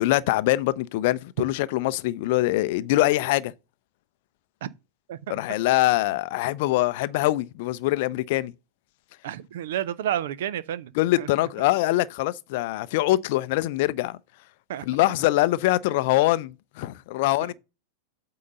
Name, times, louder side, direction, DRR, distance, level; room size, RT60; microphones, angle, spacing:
voice 1, 0.0-3.5 5.3-8.5 11.0-14.2 14.9-17.5, left 17 dB, 50° left, 0.5 m, -23 dB
voice 2, 5.1-5.4 9.2-10.9 11.2-11.5 14.7-14.9 17.4-17.5, right 11 dB, 55° right, 0.6 m, -31 dB
8.5 x 3.9 x 5.4 m
figure-of-eight pair, 90°, 0 cm